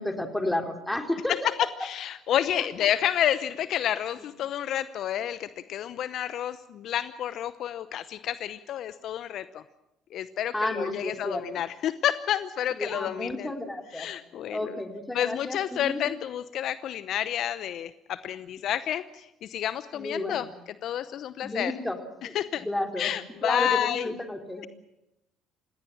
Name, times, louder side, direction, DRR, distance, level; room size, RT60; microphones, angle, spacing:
voice 1, 0.0-1.5 10.5-11.5 12.7-14.1 14.5-16.0 19.9-20.5 21.4-22.0 22.2-23.1 23.4-24.7, left 1 dB, 10° left, 5 dB, 3.8 m, -32 dB
voice 2, 1.8-9.6 10.1-13.5 13.9-14.8 15.1-20.5 20.8-21.7 22.2-22.7 23.0-24.1, left 11 dB, 60° left, 14 dB, 0.8 m, -30 dB
29.0 x 17.0 x 7.3 m, 0.89 s
hypercardioid pair, 60°, 0 cm